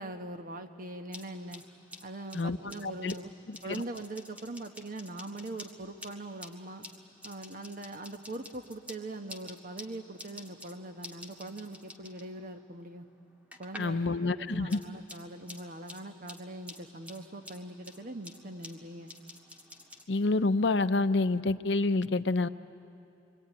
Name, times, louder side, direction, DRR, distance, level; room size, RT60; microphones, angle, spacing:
voice 1, 0.0-1.6 2.0-3.3 3.6-6.9 7.2-13.1 13.6-14.0 14.5-19.1, right 2 dB, 50° right, 7 dB, 1.2 m, -42 dB
sound 1, 0.9-14.0 14.3-20.0, left 1 dB, 10° right, 1.8 m, -50 dB
voice 2, 2.8-3.1 3.5-3.8 13.8-14.8 20.1-22.5, left 3 dB, 80° left, 11 dB, 0.7 m, -28 dB
25.0 x 24.0 x 9.5 m, 2.7 s
head